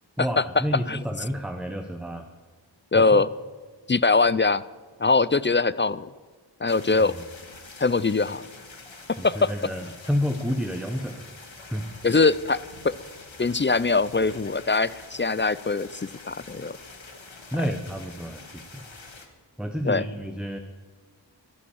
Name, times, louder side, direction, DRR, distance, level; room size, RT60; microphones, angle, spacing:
voice 1, 0.2-2.2 2.9-3.2 7.0-7.2 9.2-11.2 11.7-11.9 17.5-18.8 19.6-20.6, equal, ahead, 5 dB, 0.9 m, -30 dB
voice 2, 2.9-3.3 3.9-4.6 5.0-6.1 6.6-7.1 7.8-8.4 9.2-9.5 12.0-12.6 12.8-12.9 13.4-16.8 19.9-20.0, left 3 dB, 25° left, 18 dB, 0.4 m, -22 dB
sound 1, 6.7-19.3, left 3 dB, 85° left, 1.5 m, -46 dB
12.0 x 11.0 x 7.2 m, 1.4 s
wide cardioid pair, 40°, 46 cm